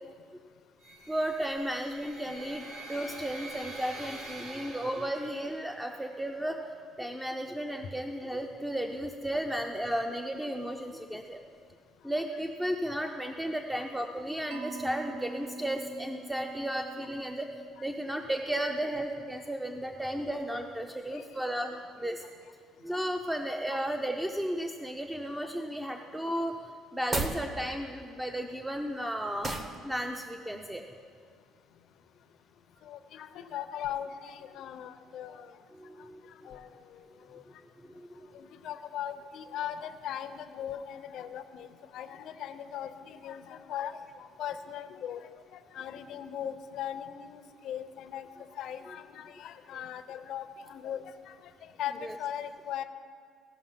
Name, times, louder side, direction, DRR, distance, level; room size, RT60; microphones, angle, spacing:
sound 1, 0.8-5.9, right 2 dB, 65° right, 1.5 m, -45 dB
voice 1, 1.1-6.6 7.0-11.4 12.0-17.5 17.8-22.2 22.8-26.6 26.9-29.5 29.8-30.8 35.8-36.5 37.9-38.3 52.0-52.1, right 1 dB, 5° right, 4 dB, 0.5 m, -34 dB
Mallet percussion, 14.5-18.5, right 3 dB, 85° right, 0.6 m, -45 dB
sound 2, 27.0-27.4 29.4-29.8, right 2 dB, 30° right, 0.8 m, -31 dB
voice 2, 32.8-35.5 36.4-36.7 37.3-37.4 38.3-41.7 41.9-45.2 45.5-48.3 48.6-51.3 51.8-52.8, left 10 dB, 65° left, 10 dB, 0.6 m, -39 dB
16.5 x 5.8 x 5.7 m, 2.1 s
cardioid pair, 140°, 0 cm